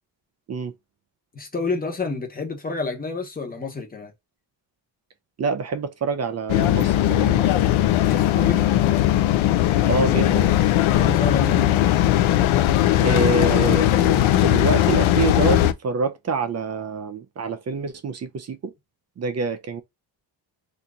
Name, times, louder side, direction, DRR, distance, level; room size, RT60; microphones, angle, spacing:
voice 1, 1.3-4.1 8.0-8.7 10.9-11.8, left 4 dB, 20° left, 0.9 m, -29 dB
voice 2, 5.4-7.6 9.8-10.5 13.0-18.7 19.2-19.8, right 4 dB, 35° right, 0.5 m, -26 dB
sound 1, 6.5-15.7, left 13 dB, 85° left, 0.6 m, -19 dB
2.8 x 2.6 x 3.5 m
wide cardioid pair, 150°, 46 cm